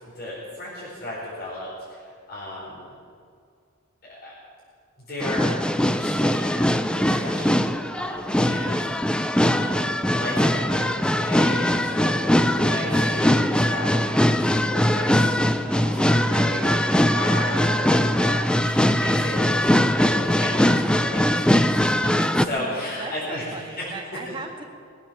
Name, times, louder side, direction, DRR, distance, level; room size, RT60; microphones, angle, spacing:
voice 1, 0.0-2.9 4.0-4.3 5.1-5.5 5.9-6.7 6.9-7.6 7.9-23.5 23.8-23.9 24.2-24.3, left 1 dB, 50° left, -9 dB, 4.8 m, -34 dB
sound 1, 5.2-22.5, left 1 dB, 5° left, 0.4 m, -21 dB
voice 2, 7.0-7.4 22.5-24.6, right 2 dB, 25° right, 0 dB, 2.0 m, -38 dB
sound 2, 15.6-23.7, right 2 dB, 40° right, 1.3 m, -43 dB
21.5 x 8.5 x 7.4 m, 2.2 s
head